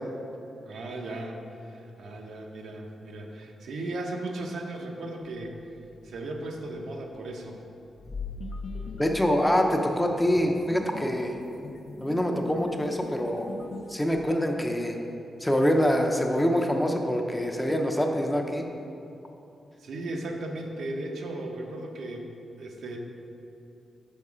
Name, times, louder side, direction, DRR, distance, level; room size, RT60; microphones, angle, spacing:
voice 1, 0.7-5.6 6.0-7.6 19.8-23.0, right 2 dB, 80° right, 1 dB, 0.6 m, -36 dB
sound 1, 5.2-6.5 8.0-10.6 11.1-11.2 14.2-14.3, left 4 dB, 40° left, 1.0 m, -40 dB
sound 2, 8.4-14.0, left 2 dB, 65° left, 0.5 m, -43 dB
voice 2, 9.0-11.4 12.0-13.5 13.9-15.0 15.4-18.7, equal, 5° left, 2 dB, 0.5 m, -25 dB
5.4 x 4.6 x 4.8 m, 2.7 s
wide cardioid pair, 120°, 0 cm